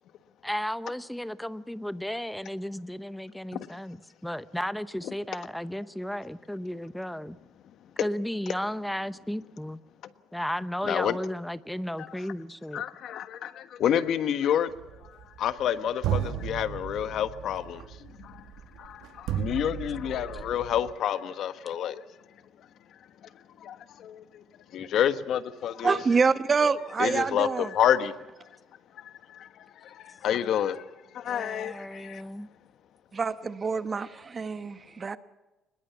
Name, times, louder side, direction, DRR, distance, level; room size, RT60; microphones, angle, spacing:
voice 1, 0.4-4.0 4.2-7.4 8.0-9.8 10.3-12.8 31.2-32.5, equal, 5° left, 0.8 m, -34 dB
voice 2, 10.8-11.2 12.0-12.3 12.7-22.0 22.6-22.7 23.2-24.4 24.7-26.0 27.0-28.1 28.9-32.3, left 9 dB, 65° left, 1.3 m, -29 dB
sound 1, 14.7-15.7 16.0-20.9, right 10 dB, 85° right, 1.6 m, -34 dB
voice 3, 25.8-27.7 33.1-35.2, right 5 dB, 30° right, 1.0 m, -26 dB
25.0 x 21.0 x 7.0 m
cardioid pair, 130°, 0 cm